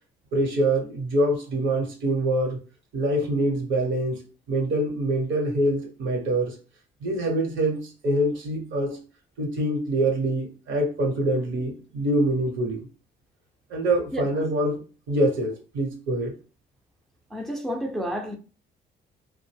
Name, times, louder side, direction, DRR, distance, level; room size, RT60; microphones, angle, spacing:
voice 1, 0.3-2.6 2.9-4.2 4.5-6.6 7.0-9.0 9.4-12.8 13.7-14.8 15.1-16.3, right 1 dB, 75° right, 1.0 m, -25 dB
voice 2, 17.3-18.4, equal, ahead, 0.4 m, -30 dB
2.5 x 2.1 x 3.2 m
cardioid pair, 90°, 20 cm